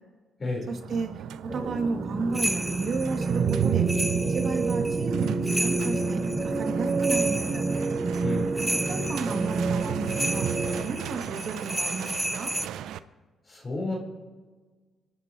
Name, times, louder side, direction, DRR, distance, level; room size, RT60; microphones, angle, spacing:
voice 1, 0.7-3.9 4.3-7.7 8.9-10.5 10.8-12.5, right 4 dB, 55° right, 2 dB, 2.4 m, -33 dB
sound 1, 0.7-13.0, right 10 dB, 80° right, 0.5 m, -34 dB
sound 2, 1.5-10.8, right 3 dB, 20° right, 1.2 m, -28 dB
sound 3, 2.3-12.7, right 1 dB, 5° right, 0.4 m, -33 dB
voice 2, 8.2-8.5 13.5-14.0, left 3 dB, 35° left, -2 dB, 4.2 m, -31 dB
25.0 x 11.0 x 3.1 m, 1.4 s
cardioid pair, 90°, 0 cm